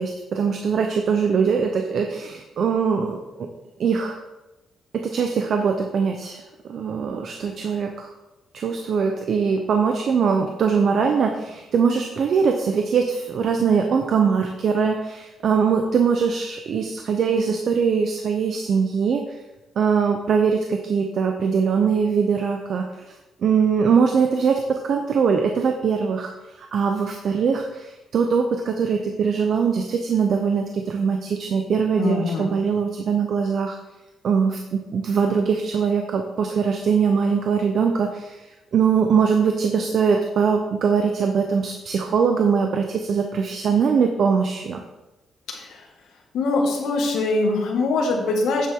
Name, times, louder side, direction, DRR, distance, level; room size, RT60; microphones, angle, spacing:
voice 1, 0.0-3.5 3.8-4.2 4.9-8.1 8.5-19.2 19.8-22.9 23.4-26.3 26.6-33.8 34.2-38.4 38.7-44.8, right 6 dB, 55° right, 4 dB, 0.8 m, -22 dB
voice 2, 32.0-32.5 45.5-45.9 46.3-48.7, left 3 dB, 80° left, 0 dB, 2.0 m, -23 dB
9.0 x 7.7 x 3.8 m, 1.0 s
cardioid pair, 145°, 0 cm